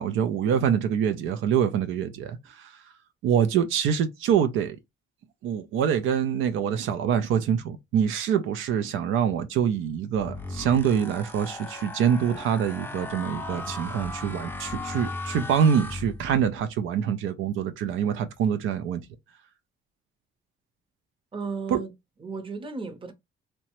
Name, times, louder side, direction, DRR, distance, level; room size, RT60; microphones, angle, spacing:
voice 1, 0.0-2.8 3.2-4.8 5.4-19.0 21.7-21.8, right 8 dB, 85° right, 0.5 m, -25 dB
sound 1, 10.1-16.6, left 2 dB, 10° left, 0.5 m, -37 dB
voice 2, 21.3-21.9 22.2-23.1, right 4 dB, 25° right, 0.7 m, -34 dB
2.9 x 2.1 x 2.9 m
cardioid pair, 90°, 20 cm